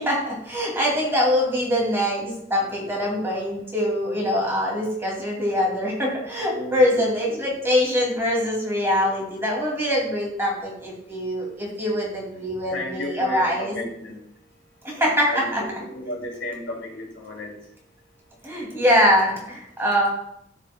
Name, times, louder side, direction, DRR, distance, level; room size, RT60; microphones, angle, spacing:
voice 1, 0.0-13.7 14.8-15.6 18.4-20.1, equal, 15° right, -3 dB, 2.4 m, -23 dB
voice 2, 6.4-7.1 9.5-9.8 11.0-11.5 12.6-14.2 15.2-17.7, left 1 dB, 75° left, -1 dB, 2.4 m, -34 dB
13.0 x 6.4 x 2.2 m, 0.76 s
head